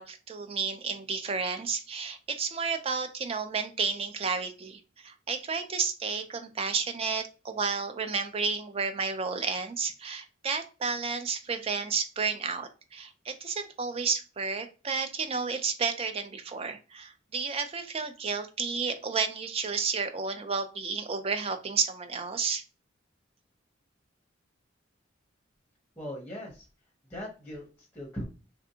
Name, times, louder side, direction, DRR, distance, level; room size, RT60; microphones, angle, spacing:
voice 1, 0.0-22.6, right 5 dB, 30° right, 8 dB, 0.4 m, -31 dB
voice 2, 26.0-26.7 27.1-28.2, equal, 10° left, -1 dB, 0.8 m, -39 dB
3.3 x 2.5 x 2.7 m, 0.32 s
head